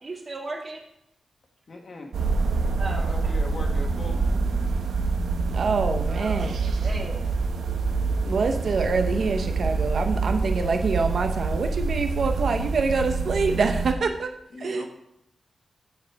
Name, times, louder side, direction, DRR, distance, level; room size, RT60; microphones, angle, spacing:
voice 1, 0.0-0.8 2.8-3.3 6.1-7.4, right 2 dB, 35° right, 0 dB, 1.9 m, -37 dB
voice 2, 1.7-2.1 2.9-4.2 14.5-14.9, left 3 dB, 40° left, 3 dB, 1.4 m, -39 dB
sound 1, 2.1-13.9, right 4 dB, 85° right, 0.8 m, -26 dB
voice 3, 5.5-6.6 8.2-14.3 14.6-14.9, right 4 dB, 55° right, 5 dB, 0.8 m, -25 dB
15.0 x 5.0 x 4.7 m, 0.79 s
wide cardioid pair, 165°, 0 cm